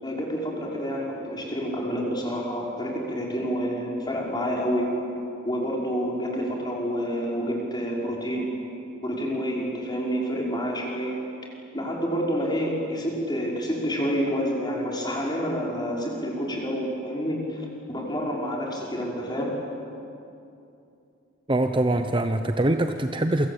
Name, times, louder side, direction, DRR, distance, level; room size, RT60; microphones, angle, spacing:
voice 1, 0.0-4.9 5.4-8.5 9.0-11.2 11.7-19.6, equal, 20° left, -2 dB, 5.8 m, -28 dB
voice 2, 21.5-23.5, right 1 dB, 25° right, 7 dB, 0.9 m, -23 dB
28.0 x 24.5 x 8.7 m, 2.7 s
head